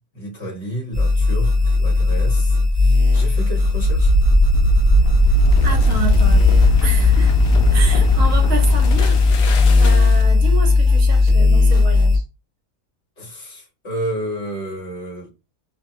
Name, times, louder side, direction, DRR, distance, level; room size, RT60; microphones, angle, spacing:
voice 1, 0.1-4.2 13.2-15.3, right 1 dB, 50° left, 1.4 m, -31 dB
sound 1, 0.9-12.2, left 3 dB, 25° right, 1.0 m, -16 dB
sound 2, 3.6-10.4, right 2 dB, 75° left, 1.0 m, -18 dB
voice 2, 5.6-7.3 7.7-12.2, right 4 dB, 70° right, 1.1 m, -30 dB
2.9 x 2.2 x 2.6 m
omnidirectional pair, 1.5 m